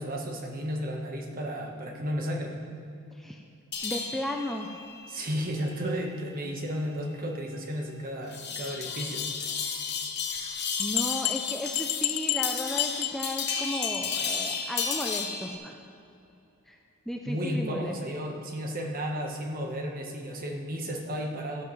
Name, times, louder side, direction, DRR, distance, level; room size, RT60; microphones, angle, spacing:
voice 1, 0.0-2.6 5.1-9.3 17.3-21.6, equal, 40° right, 1 dB, 1.3 m, -33 dB
sound 1, 3.7-15.5, left 6 dB, 50° left, 1.0 m, -34 dB
voice 2, 3.8-4.7 10.8-15.8 16.7-16.8 17.1-18.0, left 1 dB, ahead, 1 dB, 0.4 m, -35 dB
sound 2, 10.4-10.5 10.8-13.5 13.8-14.1 14.3-14.4 14.8-14.9 15.2-15.3, left 15 dB, 85° left, 0.4 m, -31 dB
14.0 x 11.0 x 3.2 m, 2.7 s
head